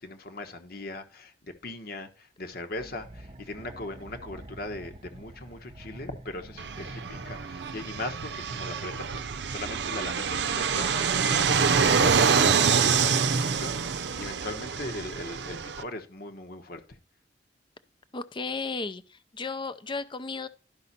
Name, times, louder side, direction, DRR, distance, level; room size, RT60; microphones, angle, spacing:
voice 1, 0.0-10.9 11.3-17.0, left 2 dB, 60° left, 1.2 m, -39 dB
sound 1, 2.7-8.0, right 1 dB, 35° right, 0.8 m, -47 dB
Fixed-wing aircraft airplane, 6.6-15.8, right 6 dB, 75° right, 0.6 m, -26 dB
voice 2, 18.1-20.5, left 4 dB, 30° left, 0.6 m, -34 dB
11.5 x 5.6 x 4.1 m
head